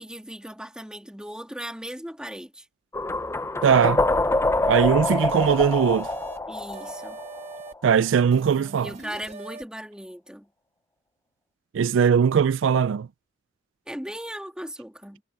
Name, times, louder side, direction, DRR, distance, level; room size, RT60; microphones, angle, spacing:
voice 1, 0.0-2.7 6.5-7.2 8.8-10.5 13.9-15.2, equal, 5° right, 2.5 m, -37 dB
sound 1, 2.9-7.9, left 2 dB, 15° left, 0.5 m, -25 dB
voice 2, 3.6-4.0 4.7-6.1 7.8-8.9 11.7-13.1, right 7 dB, 80° right, 0.4 m, -20 dB
sound 2, 5.3-6.4 6.7-7.7 8.3-9.6, right 3 dB, 35° right, 2.0 m, -41 dB
head